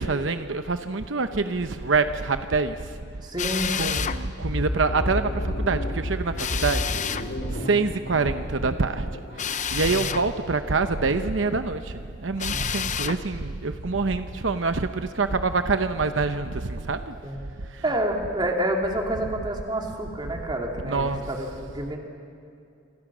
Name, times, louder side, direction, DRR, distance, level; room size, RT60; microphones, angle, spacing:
voice 1, 0.0-3.0 3.7-17.1 17.6-17.9 19.1-19.2 20.8-21.3, right 4 dB, 75° right, 9 dB, 0.9 m, -26 dB
voice 2, 3.2-3.9 7.5-7.7 9.9-10.1 12.5-12.9 17.2-17.5 17.8-22.0, right 1 dB, 25° right, 1 dB, 3.0 m, -29 dB
Drill, 3.4-4.2 6.4-7.3 9.4-10.3 12.4-13.2, left 8 dB, 40° left, 0.8 m, -29 dB
sound 1, 4.0-9.6, left 1 dB, 70° left, 3.1 m, -31 dB
28.0 x 26.5 x 6.3 m, 2.5 s
head